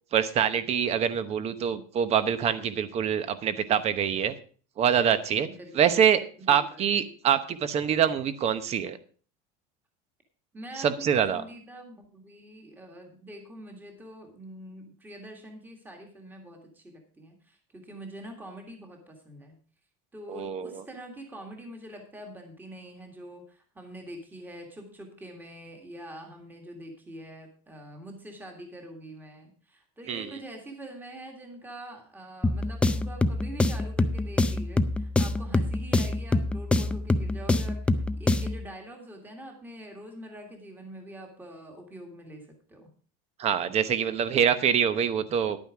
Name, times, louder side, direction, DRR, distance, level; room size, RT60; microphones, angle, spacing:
voice 1, 0.1-4.3 4.8-5.5 5.7-6.2 6.5-9.0 10.8-11.4 20.3-20.7 30.1-30.3 43.4-45.6, right 8 dB, 35° right, 12 dB, 0.9 m, -25 dB
voice 2, 5.4-6.0 6.4-6.9 10.5-19.6 20.1-42.9, right 1 dB, 10° right, 2 dB, 1.9 m, -45 dB
sound 1, 32.4-38.7, left 2 dB, 5° left, 0.4 m, -26 dB
10.5 x 9.0 x 4.8 m, 0.43 s
cardioid pair, 160°, 19 cm